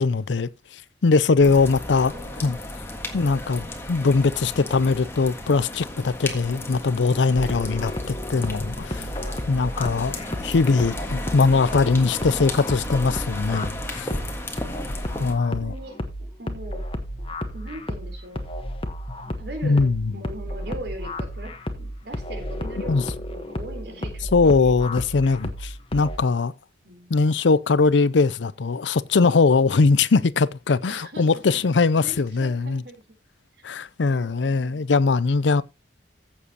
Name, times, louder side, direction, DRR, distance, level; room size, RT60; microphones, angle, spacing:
voice 1, 0.0-2.1 2.4-2.6 3.1-9.1 9.5-10.2 10.4-14.1 15.2-15.7 19.6-20.1 22.8-23.0 24.3-26.5 27.1-32.8 33.6-35.6, left 4 dB, 80° left, 0.5 m, -21 dB
sound 1, 1.4-15.3, left 1 dB, 15° left, 1.6 m, -34 dB
voice 2, 2.1-2.5 3.1-3.2 9.8-10.6 14.8-16.8 17.5-18.4 19.4-24.8 26.8-27.2 30.9-31.6 32.0-33.0 34.1-34.9, right 1 dB, 65° right, 3.6 m, -41 dB
sound 2, 7.3-26.2, left 1 dB, 30° left, 1.2 m, -32 dB
15.0 x 7.4 x 2.9 m
head